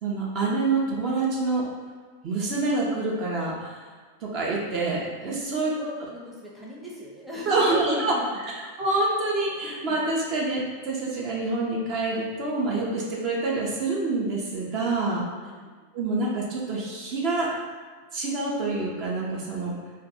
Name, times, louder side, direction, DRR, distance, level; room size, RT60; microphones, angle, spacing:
voice 1, 0.0-1.7 2.2-3.8 4.3-5.9 7.5-8.2 8.5-15.3 15.9-17.5 18.1-19.7, right 3 dB, 40° right, -4 dB, 0.6 m, -26 dB
voice 2, 5.2-8.2 9.9-10.0 15.1-15.7, equal, 5° right, -6 dB, 0.7 m, -38 dB
2.5 x 2.3 x 4.0 m, 1.5 s
figure-of-eight pair, 90°, 0 cm